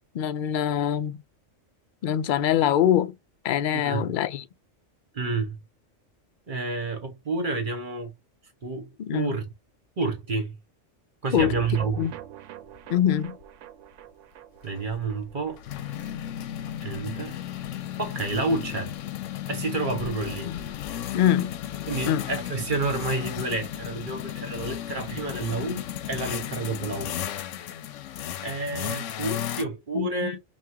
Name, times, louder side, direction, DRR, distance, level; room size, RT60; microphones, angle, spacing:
voice 1, 0.1-1.2 2.0-3.2 3.4-4.4 9.0-9.4 11.3-11.5 12.0-12.1 12.9-13.4 20.5-20.6 21.1-21.6 22.1-22.2 29.9-30.3, left 10 dB, 60° left, 0.5 m, -24 dB
voice 2, 3.7-4.1 5.1-5.6 6.5-8.1 8.6-9.5 10.0-10.6 11.2-12.1 14.6-15.6 16.8-17.4 18.0-19.0 19.5-20.5 21.9-27.2 28.4-30.4, right 3 dB, 45° right, 1.1 m, -29 dB
sound 1, 11.4-17.8 18.1-18.2 18.4-18.5, right 11 dB, 80° right, 0.9 m, -43 dB
sound 2, 12.8-12.9 13.2-13.4 14.7-29.6, left 11 dB, 80° left, 0.9 m, -34 dB
5.5 x 2.4 x 2.9 m
omnidirectional pair, 1.3 m